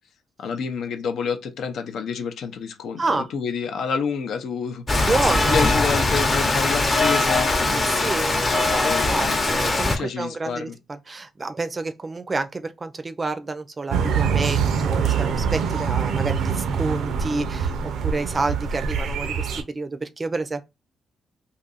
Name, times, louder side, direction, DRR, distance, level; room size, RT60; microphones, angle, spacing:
voice 1, 0.4-5.1 5.4-7.5 8.8-9.4 9.9-10.8, left 6 dB, 75° left, 0.6 m, -28 dB
Rain, 4.9-10.0, left 2 dB, 30° left, 0.7 m, -21 dB
voice 2, 5.0-5.6 7.7-20.6, right 3 dB, 30° right, 0.4 m, -29 dB
sound 1, 13.9-19.6, right 6 dB, 80° right, 0.5 m, -24 dB
2.6 x 2.5 x 4.0 m
cardioid pair, 110°, 0 cm